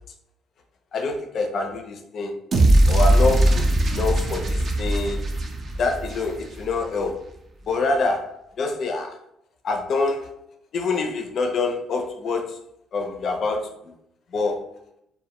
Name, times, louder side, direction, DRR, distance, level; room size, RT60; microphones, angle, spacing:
voice 1, 0.9-2.3 2.9-5.3 5.8-7.2 7.7-9.1 9.6-10.3 10.7-12.5 12.9-13.7 14.3-14.6, left 3 dB, 50° left, 4 dB, 0.4 m, -26 dB
sound 1, 2.5-6.7, right 1 dB, 40° right, 0.4 m, -20 dB
2.1 x 2.1 x 2.9 m, 0.78 s
cardioid pair, 125°, 0 cm